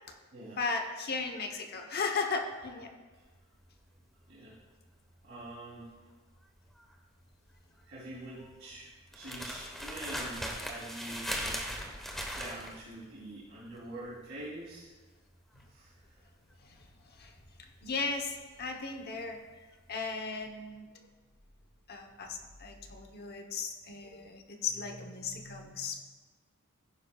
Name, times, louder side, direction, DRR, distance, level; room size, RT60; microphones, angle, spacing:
voice 1, 0.5-2.9 15.5-15.7 16.6-19.4 19.9-20.9 21.9-26.0, left 4 dB, 50° left, 4 dB, 1.0 m, -36 dB
sound 1, 3.1-19.3 19.6-20.0, equal, ahead, 1.1 m, -41 dB
voice 2, 5.2-5.9 7.9-11.6 12.3-14.9 15.7-15.9, right 1 dB, 65° right, -9 dB, 3.3 m, -45 dB
15.0 x 10.5 x 2.4 m, 1.3 s
head